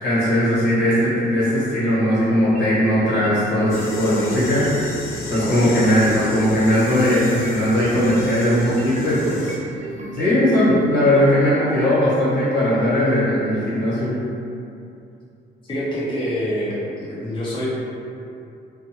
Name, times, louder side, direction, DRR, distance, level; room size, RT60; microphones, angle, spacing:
voice 1, 0.0-4.7 5.3-9.6 10.1-14.2, equal, 65° left, -9 dB, 1.2 m, -19 dB
sound 1, 2.5-10.8, right 3 dB, 35° right, 0.4 m, -35 dB
sound 2, 3.7-9.6, left 3 dB, 85° left, 0.4 m, -35 dB
voice 2, 5.4-5.8 15.6-17.7, equal, 25° left, -9 dB, 0.6 m, -26 dB
2.6 x 2.3 x 2.8 m, 2.6 s
cardioid pair, 90°, 20 cm